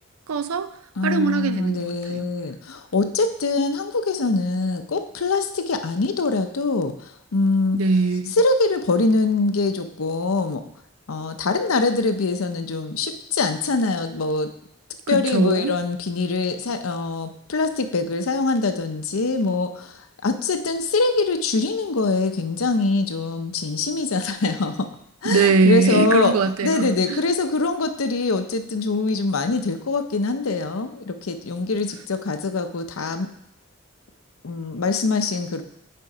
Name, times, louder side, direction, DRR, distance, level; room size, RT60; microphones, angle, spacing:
voice 1, 0.3-0.7 1.0-2.3 7.7-8.3 15.1-15.7 25.2-27.2, right 4 dB, 90° right, 11 dB, 0.5 m, -21 dB
voice 2, 1.0-7.8 8.4-10.6 11.1-14.5 15.1-20.0 20.2-24.9 25.2-26.3 26.6-33.3 34.4-35.6, left 3 dB, 80° left, 8 dB, 0.7 m, -23 dB
6.8 x 4.5 x 4.9 m, 0.76 s
head